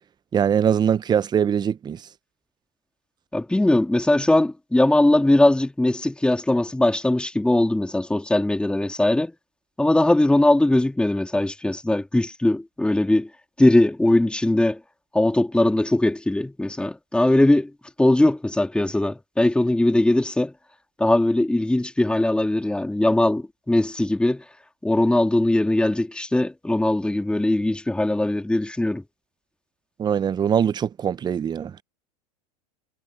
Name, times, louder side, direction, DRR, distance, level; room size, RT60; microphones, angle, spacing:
voice 1, 0.3-2.0 30.0-31.8, right 8 dB, 20° right, 0.7 m, -22 dB
voice 2, 3.3-9.3 9.8-13.3 13.6-14.8 15.1-17.7 18.0-20.5 21.0-24.4 24.8-29.0, left 1 dB, 5° left, 2.2 m, -20 dB
hypercardioid pair, 100°, 20 cm